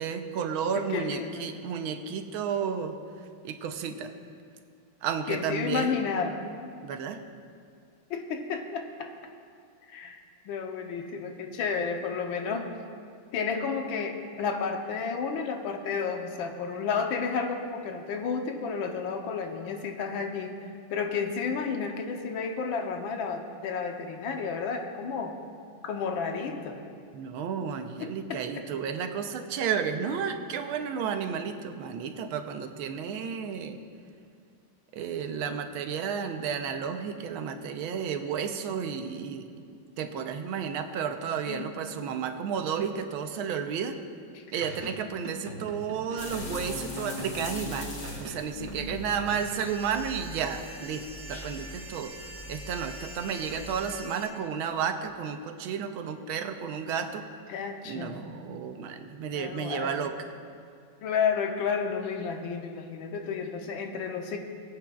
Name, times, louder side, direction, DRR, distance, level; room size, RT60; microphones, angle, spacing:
voice 1, 0.0-4.1 5.0-5.9 6.8-7.2 27.1-33.8 34.9-39.5 40.0-44.0 44.5-47.9 48.2-52.1 52.5-57.3 57.8-60.2, right 7 dB, 85° right, 7 dB, 1.5 m, -32 dB
voice 2, 0.9-1.5 5.3-6.4 8.1-9.1 9.9-12.7 13.3-20.6 20.9-25.4 25.8-26.8 28.0-28.6 41.5-41.8 44.3-44.6 48.6-48.9 57.5-58.2 59.3-60.1 61.0-64.4, left 5 dB, 75° left, 4 dB, 1.5 m, -32 dB
sound 1, 44.6-47.6 48.0-49.4, right 2 dB, 65° right, 2.0 m, -42 dB
sound 2, 46.2-53.8, left 3 dB, 45° left, 1.3 m, -41 dB
sound 3, 49.3-54.3, right 2 dB, 35° right, 2.3 m, -45 dB
22.5 x 8.5 x 2.3 m, 2.3 s
omnidirectional pair, 2.2 m